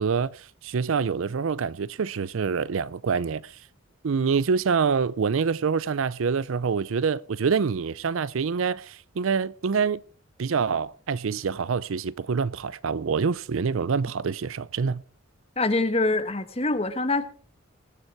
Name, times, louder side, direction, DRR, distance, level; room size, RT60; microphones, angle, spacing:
voice 1, 0.0-3.6 4.0-10.0 10.4-15.0, right 5 dB, 75° right, 0.5 m, -26 dB
voice 2, 15.6-17.2, left 2 dB, 30° left, 1.2 m, -24 dB
21.0 x 7.3 x 4.6 m
head